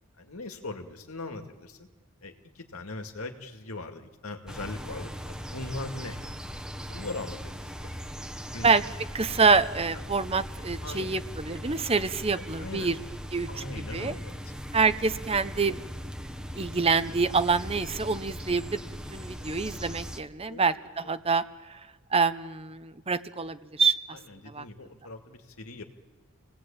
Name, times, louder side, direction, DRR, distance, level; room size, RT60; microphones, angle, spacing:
voice 1, 0.2-1.9 2.2-6.2 6.9-8.3 8.5-8.7 10.8-11.2 12.3-12.9 13.5-14.5 20.5-20.7 21.0-21.2 24.1-25.8, left 2 dB, 90° left, 4 dB, 2.3 m, -40 dB
sound 1, 4.5-20.2, equal, 5° right, 1.1 m, -39 dB
voice 2, 9.1-12.9 13.3-13.6 13.9-14.1 14.7-15.8 16.5-18.8 19.1-21.8 22.1-24.2 24.5-24.6, right 4 dB, 25° right, 12 dB, 0.8 m, -26 dB
29.0 x 18.5 x 8.8 m, 1.3 s
head